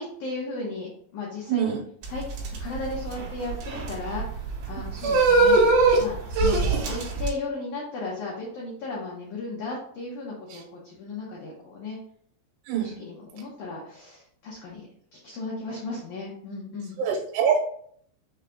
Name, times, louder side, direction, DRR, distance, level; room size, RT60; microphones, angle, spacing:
voice 1, 0.0-1.7 2.1-2.2 2.6-5.6 6.0-12.0 12.7-17.0, left 3 dB, 85° left, -4 dB, 1.7 m, -35 dB
sound 1, 2.0-7.3, right 3 dB, 70° right, 2.6 m, -22 dB
voice 2, 17.0-17.6, right 7 dB, 90° right, -1 dB, 2.8 m, -24 dB
6.4 x 2.2 x 3.6 m, 0.63 s
omnidirectional pair, 4.8 m